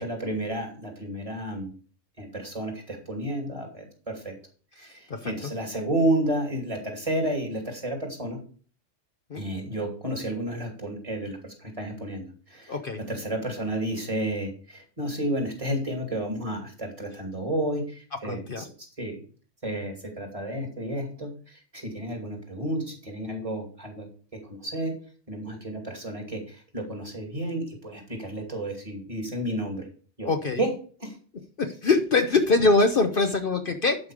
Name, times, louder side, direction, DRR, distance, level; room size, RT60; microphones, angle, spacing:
voice 1, 0.0-1.7 2.2-4.4 4.8-8.4 9.3-12.8 13.1-19.2 19.6-24.9 25.3-29.9 30.2-30.3 30.6-30.7 31.0-31.2, right 1 dB, 25° right, 2 dB, 2.7 m, -31 dB
voice 2, 12.7-13.0 18.2-18.6 30.2-30.6 31.6-34.0, left 3 dB, 50° left, 6 dB, 1.1 m, -23 dB
11.5 x 5.7 x 5.0 m, 0.40 s
omnidirectional pair, 1.3 m